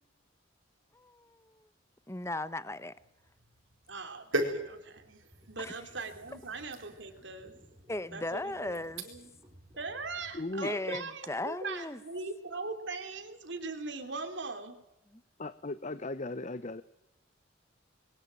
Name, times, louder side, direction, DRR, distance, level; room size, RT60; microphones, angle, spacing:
voice 1, 0.9-1.7 2.1-3.0 5.6-5.7 7.9-9.0 10.6-12.0 15.1-15.2, left 2 dB, 15° left, 15 dB, 1.0 m, -37 dB
sound 1, 3.0-9.4 9.8-10.1, right 1 dB, 90° right, 4.5 m, -40 dB
voice 2, 3.9-5.2 5.5-7.5 8.1-8.8 9.0-9.3 9.8-14.8, right 3 dB, 60° right, 6 dB, 3.3 m, -40 dB
sound 2, 5.3-10.4, equal, 20° right, 3.1 m, -59 dB
voice 3, 10.3-10.7 15.4-16.8, left 2 dB, 35° left, 13 dB, 0.8 m, -37 dB
22.5 x 21.5 x 7.7 m, 0.89 s
head